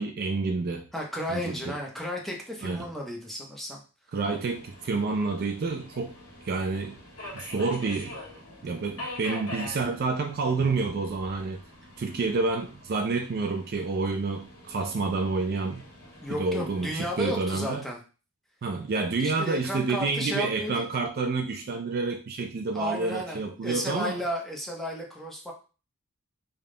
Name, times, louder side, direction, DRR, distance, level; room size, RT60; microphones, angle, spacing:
voice 1, 0.0-0.9 1.3-1.7 2.6-2.9 4.1-6.1 6.4-7.0 7.3-8.2 8.6-11.6 12.0-15.8 16.3-17.8 18.6-24.2, right 3 dB, 45° right, 0.3 m, -29 dB
voice 2, 0.9-3.8 16.2-18.0 19.2-20.9 22.7-25.5, equal, ahead, 0.7 m, -33 dB
Subway metro underground, 4.3-17.3, left 1 dB, 80° left, 1.4 m, -45 dB
3.6 x 2.3 x 3.7 m
head